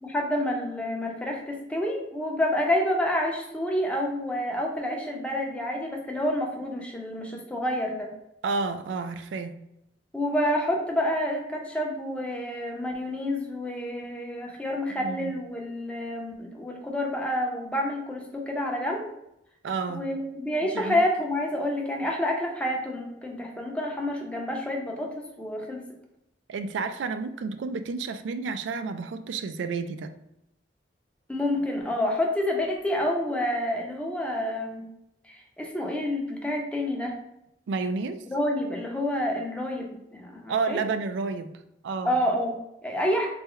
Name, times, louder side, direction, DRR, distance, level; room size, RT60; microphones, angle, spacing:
voice 1, 0.0-8.1 10.1-19.1 19.9-25.8 31.3-34.9 35.3-37.1 38.3-40.8 42.0-43.3, left 1 dB, 5° left, 0 dB, 0.6 m, -28 dB
voice 2, 8.4-9.6 14.9-15.3 19.6-20.0 20.7-21.0 26.5-30.1 37.7-38.2 40.5-42.2, right 4 dB, 80° right, 9 dB, 0.3 m, -31 dB
4.3 x 2.1 x 3.6 m, 0.83 s
head